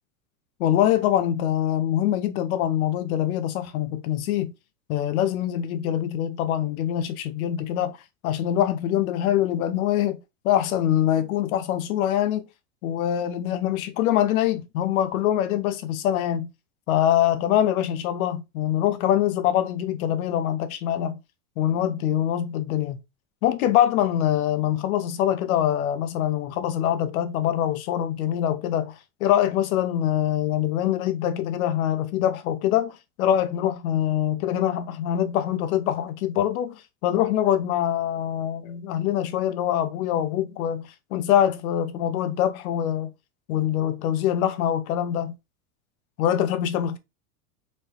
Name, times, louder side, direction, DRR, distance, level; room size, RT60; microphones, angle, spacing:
voice 1, 0.6-4.5 4.9-8.0 8.2-12.4 12.8-16.5 16.9-21.2 21.6-23.0 23.4-28.9 29.2-43.1 43.5-45.4 46.2-47.0, left 11 dB, 70° left, 0.8 m, -24 dB
4.3 x 3.3 x 3.0 m
supercardioid pair, 120°, 43 cm